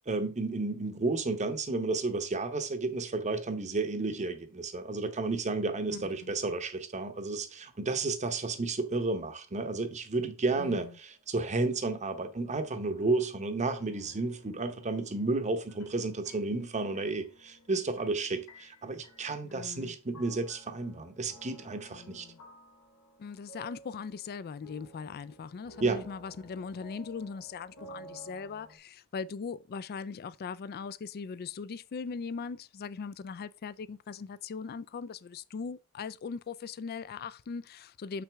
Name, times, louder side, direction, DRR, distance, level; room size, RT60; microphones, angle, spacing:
voice 1, 0.1-22.3 25.8-26.1, right 3 dB, 30° right, 0.8 m, -32 dB
voice 2, 5.9-6.3 10.6-10.9 19.4-20.0 21.9-22.4 23.2-38.2, left 5 dB, 45° left, 0.3 m, -40 dB
sound 1, 11.0-28.8, right 1 dB, 85° left, 2.3 m, -55 dB
6.6 x 6.0 x 3.4 m
head